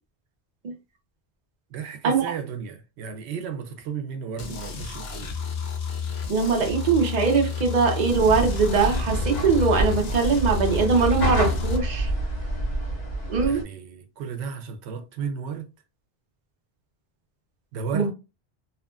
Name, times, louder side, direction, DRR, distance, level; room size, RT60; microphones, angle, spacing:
voice 1, 1.7-5.3 13.4-15.7 17.7-18.1, right 6 dB, 90° right, 0.8 m, -34 dB
sound 1, 4.4-11.8, left 6 dB, 80° left, 0.9 m, -31 dB
voice 2, 6.3-12.1 13.3-13.6 17.9-18.1, right 5 dB, 50° right, 0.7 m, -22 dB
sound 2, 8.1-13.6, equal, 60° left, 1.4 m, -27 dB
2.8 x 2.4 x 2.3 m
omnidirectional pair, 1.1 m